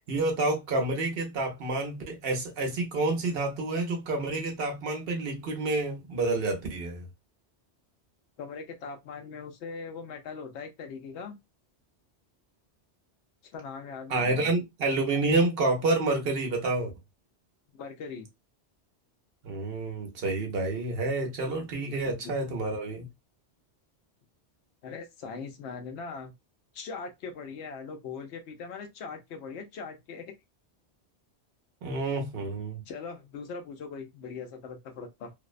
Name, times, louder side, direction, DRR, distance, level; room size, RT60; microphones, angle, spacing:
voice 1, 0.0-7.0 14.1-16.9 19.4-23.1 31.8-32.8, right 2 dB, 60° right, 0.9 m, -29 dB
voice 2, 8.4-11.4 13.4-14.5 17.7-18.3 21.8-22.3 24.8-26.3 26.7-30.4 32.4-32.5 32.9-35.3, left 5 dB, 80° left, 0.9 m, -40 dB
2.6 x 2.0 x 2.4 m
omnidirectional pair, 1.1 m